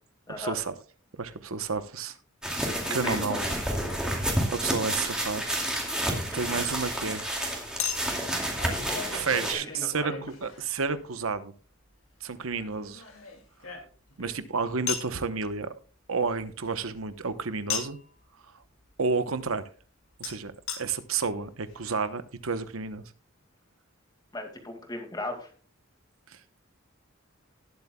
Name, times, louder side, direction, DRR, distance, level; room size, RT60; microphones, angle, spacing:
voice 1, 0.4-0.7 1.1-2.2 2.6-3.4 4.5-5.5 6.3-7.5 9.1-11.5 12.2-13.0 14.2-15.7 16.1-18.0 19.0-19.6 20.2-23.0 26.3-26.4, right 4 dB, 90° right, 1.0 m, -31 dB
sound 1, 2.4-9.5, right 1 dB, 5° right, 2.4 m, -30 dB
voice 2, 2.8-3.8 6.1-6.4 8.8-9.5 10.0-10.2 14.2-14.4 24.3-25.5, left 2 dB, 20° left, 2.2 m, -38 dB
Chink clink, 7.8-11.0 12.5-14.2 14.9-15.1 17.7-18.1 20.2-20.3 20.7-20.8 21.5-21.6 21.7-21.8, left 6 dB, 80° left, 2.5 m, -36 dB
19.0 x 8.0 x 2.3 m
head